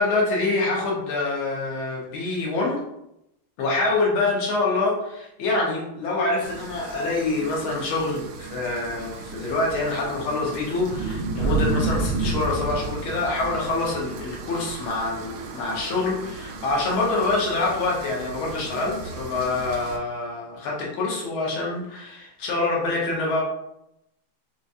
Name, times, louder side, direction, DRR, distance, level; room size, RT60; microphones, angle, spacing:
voice 1, 0.0-2.8 3.6-23.4, left 3 dB, 70° left, -3 dB, 1.8 m, -26 dB
sound 1, 6.4-20.0, right 3 dB, 80° right, 1.4 m, -32 dB
6.0 x 2.2 x 2.6 m, 0.84 s
omnidirectional pair, 2.4 m